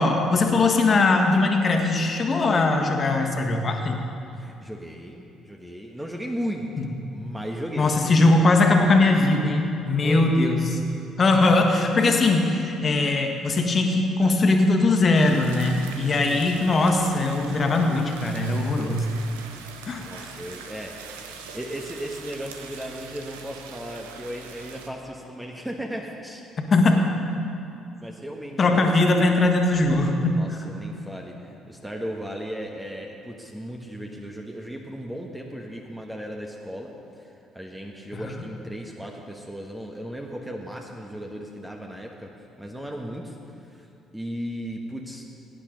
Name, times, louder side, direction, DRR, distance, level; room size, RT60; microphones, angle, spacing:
voice 1, 0.0-4.0 7.8-10.8 11.2-19.1 19.9-20.3 26.7-27.0 28.6-30.4 38.1-38.3, left 2 dB, 40° left, 3 dB, 1.6 m, -20 dB
voice 2, 4.4-8.0 10.0-10.3 16.1-16.4 19.9-26.5 28.0-28.9 30.2-37.3 37.5-43.4 43.7-43.9 44.1-45.2, equal, 10° right, 1 dB, 1.3 m, -36 dB
sound 1, 15.1-24.9, right 6 dB, 80° right, 0.8 m, -42 dB
17.5 x 10.0 x 3.9 m, 2.7 s
figure-of-eight pair, 50°, 0 cm